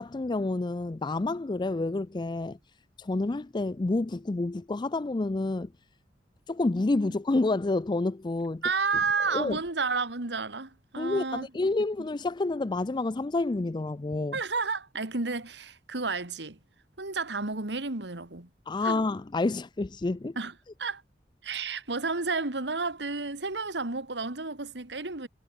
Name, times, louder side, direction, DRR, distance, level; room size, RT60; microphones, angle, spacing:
voice 1, 0.0-2.6 3.0-5.7 6.5-8.6 9.3-9.6 11.0-14.4 18.7-20.4, left 2 dB, 25° left, 0.4 m, -29 dB
voice 2, 8.6-11.5 14.3-16.6 17.0-18.5 18.8-19.0 20.4-20.5 20.8-21.0 21.4-25.3, right 4 dB, 75° right, 2.2 m, -31 dB
head